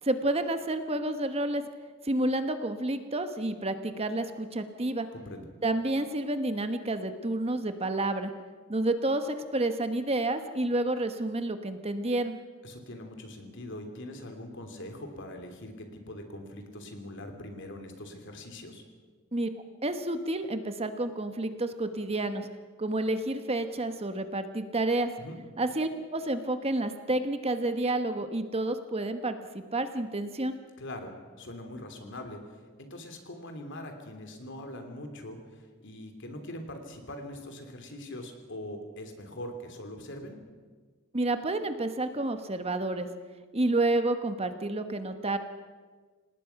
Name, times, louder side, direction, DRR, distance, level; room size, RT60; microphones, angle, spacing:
voice 1, 0.0-1.7 2.0-5.1 5.6-8.3 8.7-12.4 19.3-19.5 19.8-22.5 22.8-25.1 25.6-30.5 41.1-43.1 43.5-45.4, right 2 dB, 30° right, 9 dB, 1.2 m, -29 dB
voice 2, 5.1-5.5 12.6-18.8 25.2-25.4 30.8-40.4, left 1 dB, 60° left, 5 dB, 3.2 m, -42 dB
27.0 x 19.0 x 5.9 m, 1.5 s
head